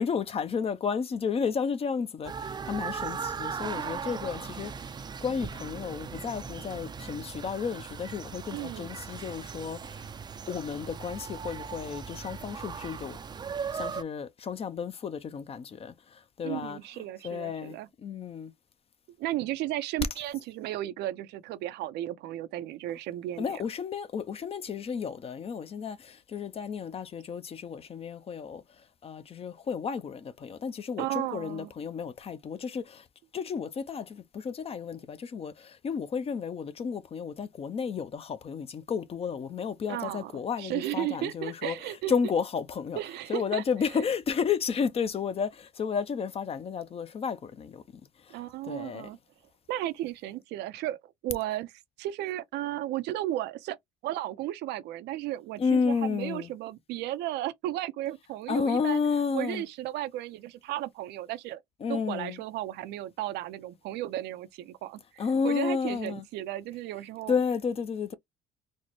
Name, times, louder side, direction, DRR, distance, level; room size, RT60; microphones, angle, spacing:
voice 1, 0.0-2.3 2.7-4.7 5.2-9.8 10.5-13.2 13.7-15.9 16.4-17.8 18.0-18.5 23.4-28.6 29.0-33.0 33.3-43.0 43.3-47.8 48.6-49.1 55.6-56.5 58.5-59.6 61.8-62.4 65.2-66.2 67.3-68.1, left 6 dB, 35° left, 0.5 m, -32 dB
sound 1, 2.2-14.0, right 6 dB, 25° right, 0.4 m, -38 dB
voice 2, 8.5-8.9 16.4-17.9 19.2-23.6 31.0-31.7 39.9-40.3 40.6-42.1 42.9-43.6 43.9-44.0 48.3-49.2 49.7-51.7 52.0-53.8 54.0-59.0 59.3-61.6 61.9-67.4, right 14 dB, 85° right, 0.5 m, -34 dB
4.1 x 2.1 x 3.0 m
cardioid pair, 110°, 17 cm